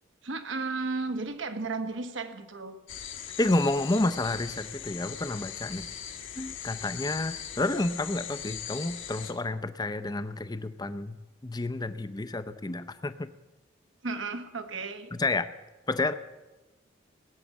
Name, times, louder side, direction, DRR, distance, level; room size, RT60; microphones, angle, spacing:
voice 1, 0.2-2.7 14.0-15.1, right 3 dB, 65° right, 8 dB, 1.3 m, -34 dB
sound 1, 2.9-9.3, left 9 dB, 70° left, 1.5 m, -40 dB
voice 2, 3.4-5.9 6.4-11.2 11.4-13.3 15.1-15.5 15.9-16.1, left 2 dB, 20° left, 12 dB, 0.6 m, -30 dB
19.0 x 8.6 x 7.2 m, 1.1 s
head